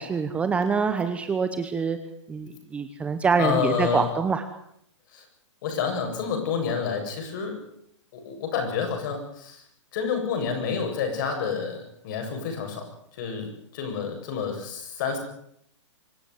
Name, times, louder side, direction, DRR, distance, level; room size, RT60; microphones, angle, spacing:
voice 1, 0.0-2.0 2.3-4.4, right 5 dB, 10° right, 9 dB, 1.0 m, -25 dB
voice 2, 3.4-4.1 5.1-5.2 5.6-7.6 8.1-9.6 9.9-12.9 13.1-15.2, left 6 dB, 40° left, 4 dB, 7.8 m, -29 dB
25.5 x 14.0 x 9.6 m, 0.71 s
hypercardioid pair, 165°, 16 cm